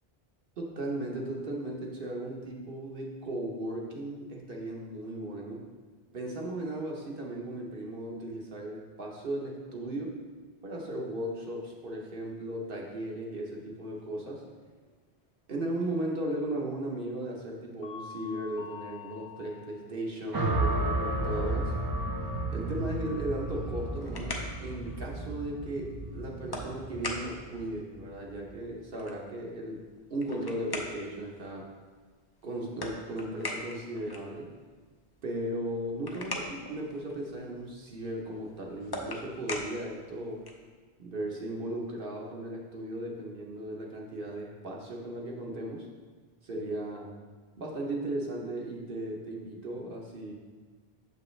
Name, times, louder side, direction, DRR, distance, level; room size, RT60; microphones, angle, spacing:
voice 1, 0.6-5.7 6.1-10.2 10.6-14.4 15.5-21.7 22.5-29.8 30.1-31.7 32.4-34.5 35.2-40.4 41.0-45.9 46.4-47.1 47.6-50.3, right 1 dB, 60° right, -1 dB, 1.1 m, -36 dB
sound 1, 14.6-14.9 15.8-16.1 16.7-17.2 17.6-19.8 20.1-23.8, left 7 dB, 85° left, 1.2 m, -47 dB
sound 2, 20.3-28.6, right 2 dB, 35° right, 0.3 m, -33 dB
sound 3, 23.7-40.7, left 1 dB, 30° left, 0.5 m, -43 dB
7.1 x 5.4 x 3.2 m, 1.4 s
omnidirectional pair, 1.1 m